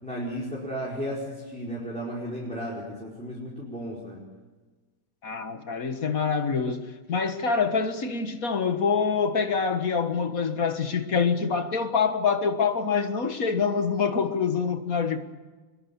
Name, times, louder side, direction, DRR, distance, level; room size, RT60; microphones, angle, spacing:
voice 1, 0.0-4.2, equal, 5° left, 4.8 m, -34 dB
voice 2, 5.2-15.2, left 5 dB, 45° left, 1.8 m, -26 dB
23.5 x 21.5 x 7.1 m
omnidirectional pair, 2.2 m